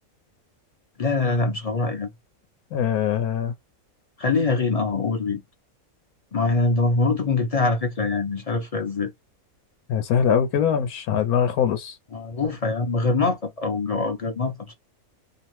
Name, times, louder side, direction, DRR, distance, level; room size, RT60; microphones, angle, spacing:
voice 1, 1.0-2.1 4.2-5.4 6.3-9.1 12.1-14.7, left 3 dB, 50° left, 0.4 m, -24 dB
voice 2, 2.7-3.5 9.9-12.0, left 8 dB, 85° left, 1.1 m, -22 dB
2.8 x 2.0 x 3.0 m
omnidirectional pair, 1.5 m